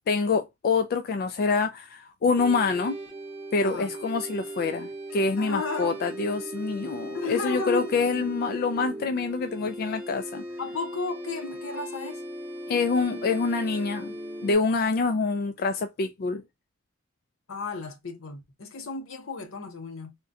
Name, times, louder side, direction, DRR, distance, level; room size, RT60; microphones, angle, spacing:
voice 1, 0.1-3.0 3.5-10.4 12.7-14.1 14.4-16.4, left 4 dB, 50° left, 0.3 m, -26 dB
sound 1, 2.4-14.6, right 1 dB, 5° right, 1.0 m, -38 dB
voice 2, 3.6-3.9 5.4-6.0 7.1-7.9 10.6-12.2 17.5-20.1, left 3 dB, 75° left, 0.8 m, -33 dB
3.7 x 2.2 x 2.5 m
head